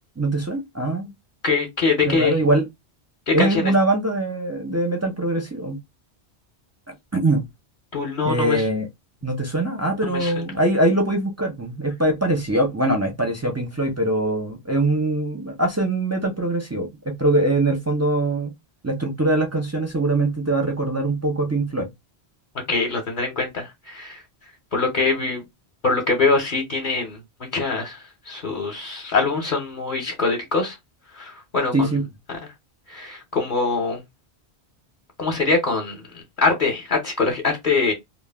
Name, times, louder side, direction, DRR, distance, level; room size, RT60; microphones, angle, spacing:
voice 1, 0.2-1.1 2.0-2.7 3.3-5.8 6.9-7.4 8.2-8.9 9.2-18.5 18.8-21.9 31.7-32.0, right 2 dB, 25° right, 0.4 m, -22 dB
voice 2, 1.4-2.4 3.3-3.7 7.9-8.6 10.2-10.3 22.7-24.2 24.7-25.4 25.8-27.2 27.5-28.0 28.3-30.7 31.2-31.7 32.9-34.0 35.2-36.0 36.4-37.9, left 4 dB, 50° left, 0.8 m, -23 dB
2.2 x 2.1 x 3.3 m
omnidirectional pair, 1.1 m